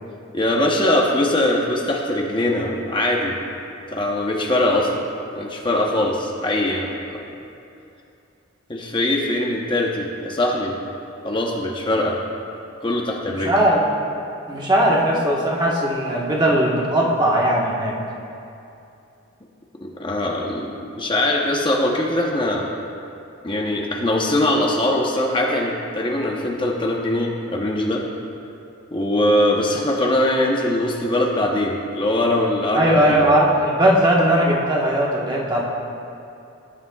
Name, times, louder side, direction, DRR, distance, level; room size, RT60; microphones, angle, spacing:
voice 1, 0.3-3.4 3.9-5.1 5.4-7.2 8.7-10.7 11.2-12.2 12.8-13.5 19.8-22.7 23.4-28.0 28.9-33.4, left 1 dB, 25° left, -1 dB, 0.9 m, -21 dB
voice 2, 13.4-13.8 14.5-18.0 32.7-35.7, right 1 dB, 20° right, -3 dB, 1.3 m, -18 dB
18.5 x 10.5 x 2.4 m, 2.7 s
head